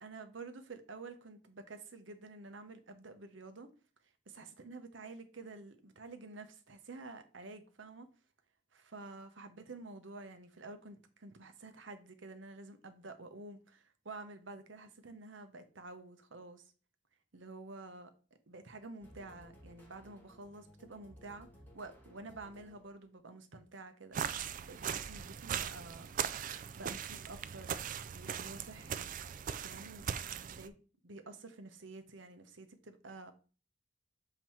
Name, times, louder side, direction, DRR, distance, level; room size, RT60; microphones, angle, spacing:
voice 1, 0.0-3.7 4.3-8.1 8.7-16.6 17.3-18.1 18.5-21.5 21.7-26.1 26.5-27.7 28.1-29.1 29.6-30.1 30.5-30.7 31.0-33.3, right 3 dB, 65° right, 0.8 m, -50 dB
sound 1, 19.0-23.2, equal, 10° left, 1.4 m, -59 dB
sound 2, 24.1-30.7, right 8 dB, 40° right, 0.3 m, -39 dB
7.3 x 2.9 x 4.4 m
head